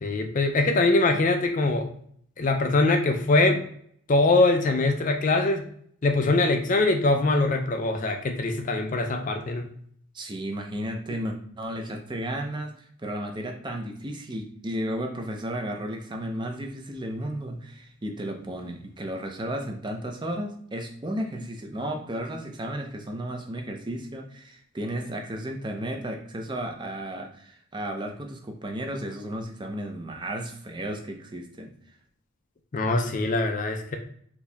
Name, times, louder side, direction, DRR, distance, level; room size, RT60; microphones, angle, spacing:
voice 1, 0.0-1.9 2.4-3.6 4.1-5.7 6.0-9.7 32.7-34.0, left 2 dB, 35° left, 5 dB, 0.4 m, -23 dB
voice 2, 10.1-31.7, right 1 dB, 20° right, 3 dB, 0.5 m, -33 dB
4.5 x 2.7 x 3.4 m, 0.62 s
head